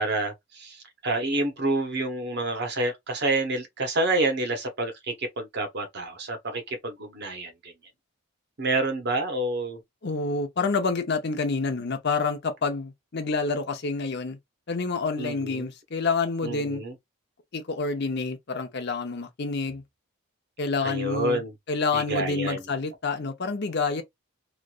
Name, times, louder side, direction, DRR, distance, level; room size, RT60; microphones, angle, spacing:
voice 1, 0.0-7.7 8.6-9.8 15.2-15.7 16.4-16.9 20.8-21.5 21.9-22.6, right 2 dB, 50° right, 0.9 m, -28 dB
voice 2, 10.0-14.4 14.7-16.8 17.5-19.8 20.6-21.4 21.7-24.0, left 4 dB, 50° left, 0.6 m, -28 dB
3.1 x 2.5 x 2.4 m
head